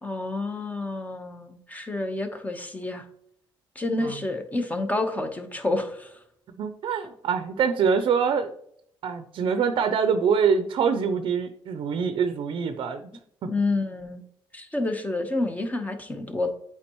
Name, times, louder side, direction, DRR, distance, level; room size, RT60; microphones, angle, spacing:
voice 1, 0.0-3.0 3.7-6.1 13.5-14.2 14.5-16.5, left 2 dB, 15° left, 7 dB, 1.0 m, -29 dB
voice 2, 6.6-8.5 9.0-13.0, right 6 dB, 65° right, 9 dB, 0.5 m, -24 dB
8.5 x 4.6 x 3.0 m, 0.71 s
cardioid pair, 105°, 9 cm